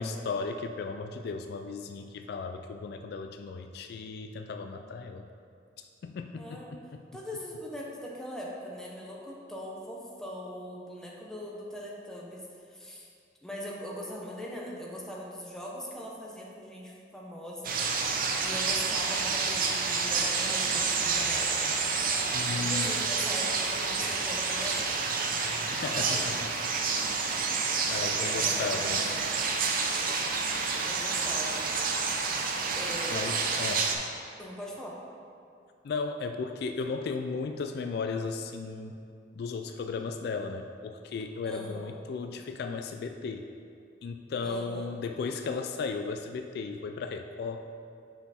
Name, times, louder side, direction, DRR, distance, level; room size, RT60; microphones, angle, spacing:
voice 1, 0.0-5.3 6.0-7.0 22.3-23.0 25.7-26.4 27.9-29.0 33.1-33.9 35.8-39.0 39.4-43.4 44.0-47.7, left 4 dB, 60° left, 7 dB, 0.3 m, -35 dB
voice 2, 6.4-6.7 7.1-13.1 13.4-18.0 18.4-21.5 22.5-25.0 25.7-26.4 27.9-29.4 30.8-31.7 32.7-33.3 34.4-35.0 41.4-42.0 44.4-45.0, equal, 5° left, -4 dB, 0.9 m, -41 dB
sound 1, 17.6-33.9, right 4 dB, 50° right, 0.6 m, -29 dB
5.9 x 5.8 x 4.2 m, 2.5 s
head